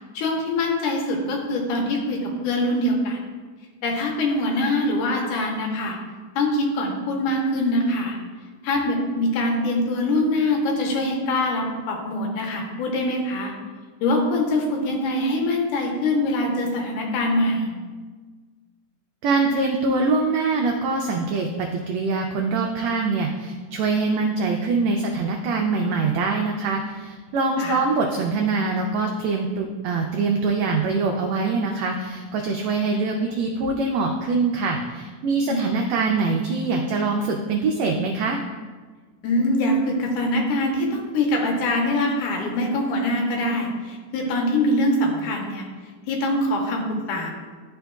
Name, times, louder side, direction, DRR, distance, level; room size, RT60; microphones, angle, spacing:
voice 1, 0.1-3.2 3.8-6.0 6.4-8.2 8.6-13.5 14.0-17.7 27.6-27.8 35.5-35.6 39.2-45.7 46.1-47.3, left 1 dB, 80° left, 0 dB, 2.3 m, -23 dB
voice 2, 19.2-38.4, right 3 dB, 90° right, 1 dB, 1.5 m, -24 dB
11.5 x 4.3 x 2.3 m, 1.4 s
omnidirectional pair, 3.6 m